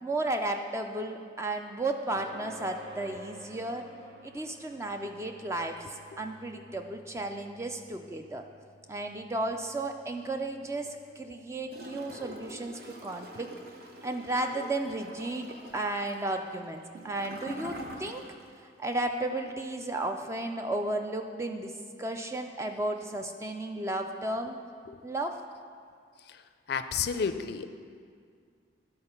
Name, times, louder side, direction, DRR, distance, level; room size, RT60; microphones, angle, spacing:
voice 1, 0.0-3.9 4.2-8.4 8.9-13.5 14.0-18.3 18.8-24.6 25.0-25.4, right 2 dB, 15° right, 5 dB, 0.3 m, -34 dB
sound 1, 2.1-17.0, equal, 75° right, 1.3 m, -54 dB
Gurgling / Toilet flush, 11.7-18.5 18.8-18.9, right 1 dB, 55° right, 0.9 m, -45 dB
voice 2, 26.7-27.7, left 6 dB, 60° left, 10 dB, 0.4 m, -31 dB
11.5 x 4.4 x 5.6 m, 2.1 s
head